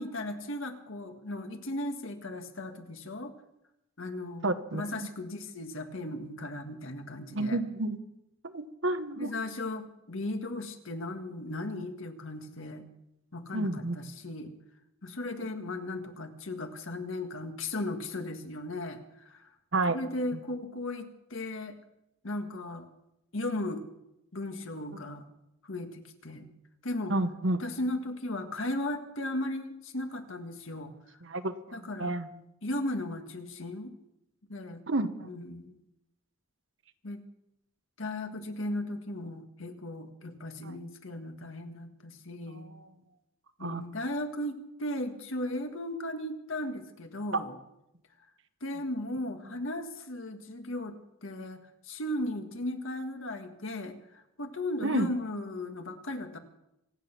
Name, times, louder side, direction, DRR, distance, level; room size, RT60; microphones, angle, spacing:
voice 1, 0.0-3.3 4.0-4.5 4.7-7.6 9.2-12.8 13.3-14.5 15.0-19.5 19.9-21.8 22.2-22.9 23.3-23.8 24.3-25.2 25.6-26.5 26.8-27.1 27.6-30.9 31.7-32.1 32.6-33.9 34.5-34.8 35.2-35.7 37.0-37.2 38.0-42.7 43.6-47.6 48.6-56.4, left 1 dB, 65° left, 6 dB, 1.7 m, -36 dB
voice 2, 4.4-5.1 7.3-8.0 8.5-9.3 13.5-14.0 19.7-20.0 27.1-27.6 31.2-31.5 32.0-32.3 34.9-35.3 40.6-40.7 42.6-42.8 43.6-43.8 54.8-55.1, right 2 dB, 60° right, 10 dB, 1.1 m, -30 dB
25.5 x 9.0 x 5.9 m, 0.85 s
head